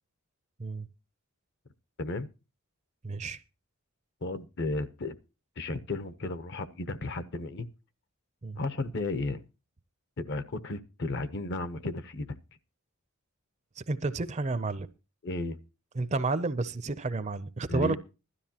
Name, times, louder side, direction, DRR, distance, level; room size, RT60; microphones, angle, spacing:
voice 1, 3.0-3.4 8.4-8.6 13.8-14.9 15.9-18.0, right 3 dB, 30° right, 0.5 m, -31 dB
voice 2, 4.2-5.1 5.6-7.7 8.6-9.4 10.2-12.4 15.2-15.6 17.7-18.0, left 2 dB, 50° left, 0.8 m, -34 dB
16.5 x 12.5 x 2.9 m
head